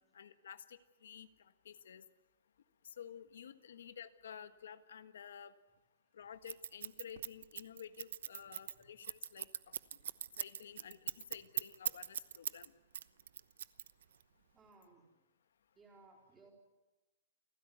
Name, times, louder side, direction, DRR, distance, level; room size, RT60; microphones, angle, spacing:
voice 1, 0.1-2.0 2.8-5.5 6.1-9.7 10.4-12.7, left 8 dB, 70° left, 10 dB, 1.4 m, -52 dB
Scissors, 6.5-12.7 12.9-14.2, right 9 dB, 60° right, 1.0 m, -40 dB
voice 2, 14.5-15.1 15.8-16.5, right 3 dB, 10° right, 1 dB, 4.3 m, -62 dB
29.0 x 15.5 x 9.5 m, 1.1 s
hypercardioid pair, 180°, 0 cm